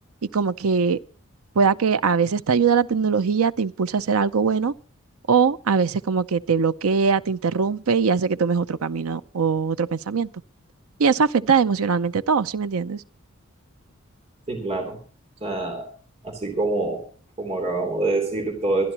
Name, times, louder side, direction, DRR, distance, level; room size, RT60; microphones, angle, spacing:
voice 1, 0.3-1.0 1.6-4.7 5.3-10.3 11.0-13.0, right 5 dB, 85° right, 0.6 m, -21 dB
voice 2, 14.5-15.0 15.4-15.9 16.2-17.1 17.4-18.9, right 2 dB, 30° right, 3.1 m, -25 dB
24.5 x 11.0 x 2.9 m
head